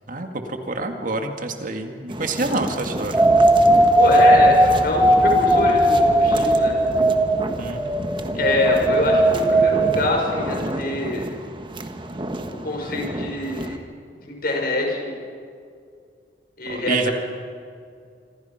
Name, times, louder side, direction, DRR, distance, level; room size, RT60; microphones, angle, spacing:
voice 1, 0.1-3.2 7.6-8.4 16.7-17.1, right 2 dB, 50° right, 5 dB, 2.0 m, -28 dB
sound 1, 2.1-13.8, right 1 dB, 25° right, 1.5 m, -31 dB
sound 2, 3.1-10.4, right 1 dB, 10° right, 1.3 m, -17 dB
voice 2, 4.0-6.7 8.4-11.2 12.6-13.8 14.2-15.2 16.6-17.1, left 2 dB, 55° left, 0 dB, 6.0 m, -24 dB
27.0 x 26.0 x 5.8 m, 2.3 s
head